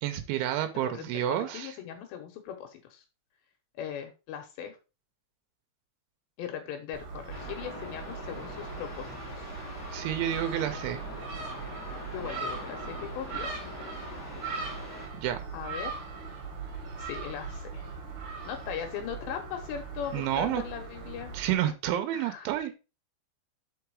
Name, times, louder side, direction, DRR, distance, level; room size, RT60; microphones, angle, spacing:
voice 1, 0.0-1.7 9.9-11.0 15.1-15.4 20.1-20.6 21.3-22.7, right 12 dB, 90° right, 3.2 m, -30 dB
voice 2, 0.7-3.0 3.8-4.8 6.4-9.1 9.4-9.5 12.1-13.5 15.5-15.9 17.0-17.9 18.4-21.3 22.1-22.5, left 8 dB, 75° left, 3.0 m, -39 dB
Gull seagull, 6.9-21.5, right 4 dB, 60° right, 2.4 m, -40 dB
sound 1, 7.3-15.1, left 2 dB, 55° left, 1.1 m, -43 dB
5.8 x 5.4 x 4.6 m
omnidirectional pair, 5.4 m